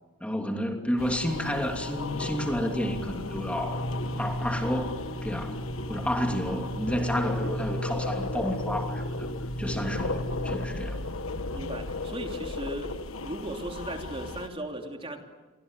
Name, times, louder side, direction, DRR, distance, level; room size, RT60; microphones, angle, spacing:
voice 1, 0.2-3.8 4.2-5.6 5.9-9.3 9.6-11.0, equal, 5° left, 3 dB, 3.0 m, -31 dB
sound 1, 1.0-14.5, left 3 dB, 85° left, 1.5 m, -36 dB
sound 2, 1.2-10.7, equal, 55° left, 3.1 m, -35 dB
voice 2, 11.5-13.0 13.2-15.2, right 1 dB, 25° right, 3 dB, 3.0 m, -37 dB
29.5 x 24.5 x 8.3 m, 1.2 s
head